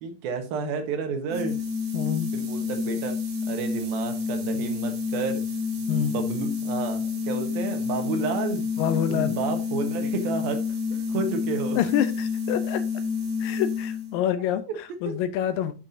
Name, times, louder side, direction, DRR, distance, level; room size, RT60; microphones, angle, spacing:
voice 1, 0.0-1.6 2.3-3.2 3.5-5.4 5.9-8.6 9.1-10.6 10.9-11.8, right 5 dB, 80° right, 6 dB, 3.1 m, -31 dB
sound 1, 1.3-14.2, left 5 dB, 55° right, 3.0 m, -29 dB
voice 2, 1.9-2.3 5.9-6.2 8.8-9.4 11.8-12.8 13.4-15.7, left 10 dB, 85° left, 12 dB, 2.3 m, -27 dB
9.5 x 5.8 x 2.7 m, 0.32 s
omnidirectional pair, 4.2 m